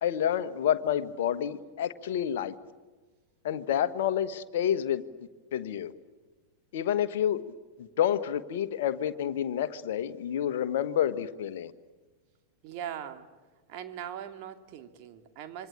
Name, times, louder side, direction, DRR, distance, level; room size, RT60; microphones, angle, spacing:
voice 1, 0.0-2.5 3.4-5.0 5.5-5.9 6.7-7.4 7.8-11.7, left 10 dB, 55° left, 11 dB, 1.3 m, -29 dB
voice 2, 12.6-13.3 13.7-15.7, right 9 dB, 45° right, 7 dB, 2.5 m, -40 dB
27.0 x 24.0 x 8.7 m, 1.3 s
figure-of-eight pair, 90°, 0 cm